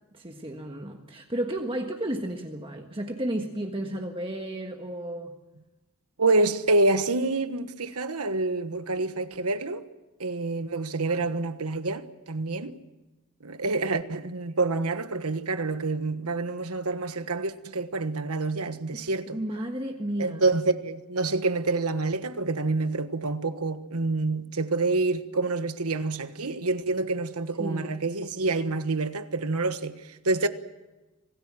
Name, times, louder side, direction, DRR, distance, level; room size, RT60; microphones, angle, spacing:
voice 1, 0.1-5.3 11.1-11.3 18.9-20.4 27.6-27.9, right 1 dB, 25° right, 1.5 m, -33 dB
voice 2, 6.2-9.8 10.2-12.7 13.4-19.4 20.2-29.9 30.2-30.5, right 3 dB, 85° right, 1.3 m, -27 dB
26.0 x 18.5 x 7.6 m
head